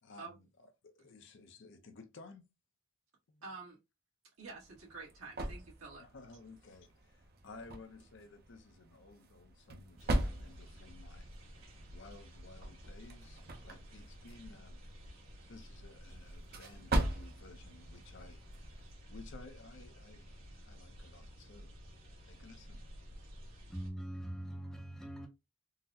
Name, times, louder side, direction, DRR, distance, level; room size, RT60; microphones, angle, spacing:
voice 1, 0.0-2.5 3.3-3.4 6.0-11.3 11.6-14.8 15.5-18.8 19.1-22.9, left 3 dB, 60° left, 0.6 m, -56 dB
voice 2, 3.4-3.8 4.4-6.0, right 4 dB, 85° right, 1.4 m, -48 dB
sound 1, 4.4-19.0, right 1 dB, 45° right, 0.5 m, -41 dB
sound 2, 10.0-23.9, equal, 65° right, 1.7 m, -52 dB
voice 3, 23.7-25.3, right 1 dB, ahead, 0.5 m, -42 dB
3.8 x 2.0 x 2.6 m
head